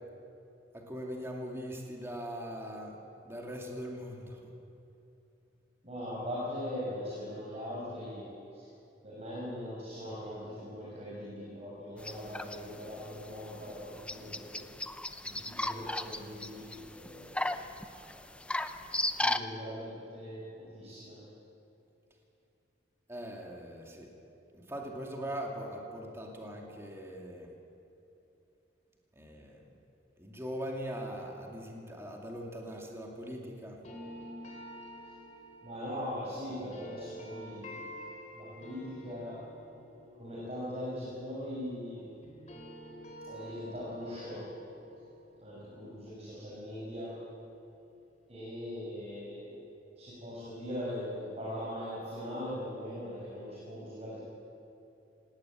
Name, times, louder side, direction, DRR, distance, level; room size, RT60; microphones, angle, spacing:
voice 1, 0.7-2.9 3.2-4.4 23.1-24.1 24.5-27.5 29.2-29.6 30.2-33.8, equal, 15° right, 0 dB, 2.5 m, -41 dB
voice 2, 5.8-8.3 8.5-8.7 9.0-14.6 15.2-17.5 19.2-21.2 35.6-37.8 38.3-39.4 40.2-42.1 43.3-44.4 45.4-47.1 48.3-49.6 50.0-54.2, equal, 35° right, -6 dB, 5.7 m, -40 dB
sound 1, 12.0-19.4, left 1 dB, 5° left, 0.6 m, -36 dB
sound 2, 33.8-41.9 42.2-47.2, equal, 40° left, 3.5 m, -49 dB
18.5 x 18.0 x 8.8 m, 2.8 s
head